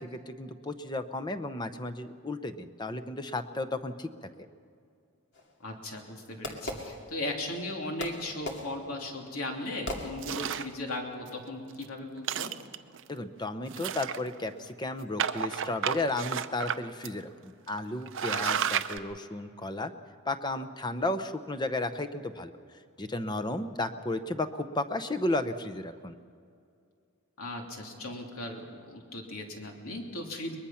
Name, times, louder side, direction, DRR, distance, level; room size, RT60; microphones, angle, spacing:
voice 1, 0.0-4.1 13.1-19.9 20.3-22.5 23.0-26.1, left 2 dB, 20° left, 8 dB, 0.8 m, -33 dB
Fireworks, 5.3-7.6 8.0-10.7, left 1 dB, 55° left, 2.4 m, -40 dB
voice 2, 5.6-12.5 18.4-18.6 27.4-30.6, left 1 dB, 80° left, 1 dB, 3.0 m, -37 dB
sound 1, 10.2-10.7 11.3-11.4 11.7-11.8 12.2-13.0 13.7-14.5 15.2-16.8 17.0-17.1 17.7-17.8 18.1-19.0, right 8 dB, 60° right, 0.6 m, -31 dB
23.0 x 20.5 x 5.8 m, 2.3 s
head